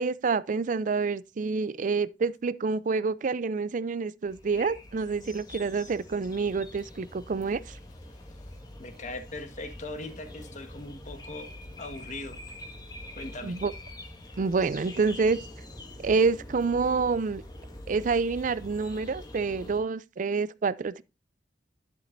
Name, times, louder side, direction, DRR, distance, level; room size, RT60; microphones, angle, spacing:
voice 1, 0.0-7.6 13.4-13.7 14.4-15.4 16.0-17.4 17.9-21.0, right 4 dB, 45° right, 0.4 m, -27 dB
sound 1, 4.2-19.8, left 1 dB, 20° left, 1.7 m, -45 dB
voice 2, 8.3-11.5 11.8-12.4 13.1-13.6, left 2 dB, 40° left, 1.5 m, -40 dB
11.0 x 7.1 x 2.6 m
head